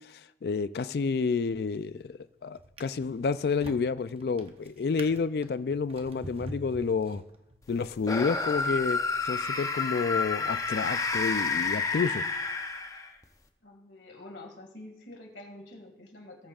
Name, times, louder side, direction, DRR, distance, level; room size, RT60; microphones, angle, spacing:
voice 1, 0.1-7.2 7.7-12.2, left 5 dB, 60° left, 0.3 m, -30 dB
Drawer open or close, 1.6-2.0 2.6-7.8 8.5-8.6, right 1 dB, 35° right, 0.8 m, -46 dB
sound 1, 8.0-13.2, left 4 dB, 20° left, 0.6 m, -30 dB
voice 2, 13.6-16.5, left 2 dB, 90° left, 2.1 m, -47 dB
19.0 x 8.8 x 2.4 m
head